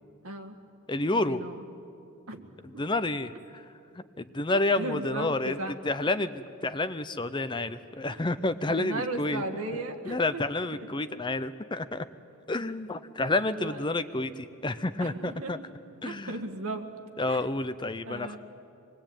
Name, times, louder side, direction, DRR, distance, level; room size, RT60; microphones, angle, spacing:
voice 1, 0.2-0.6 1.1-1.6 2.3-2.4 4.5-5.7 8.1-8.2 8.8-10.4 10.7-10.9 13.5-13.8 15.0-15.5 16.0-16.9 17.3-17.5 18.1-18.4, right 2 dB, 75° right, 4 dB, 1.8 m, -36 dB
voice 2, 0.9-1.4 2.8-3.6 4.2-5.6 5.8-9.4 10.0-12.1 12.5-15.6 16.0-16.3 17.2-18.4, left 2 dB, 20° left, 12 dB, 0.6 m, -29 dB
25.0 x 20.5 x 9.0 m, 2.7 s
head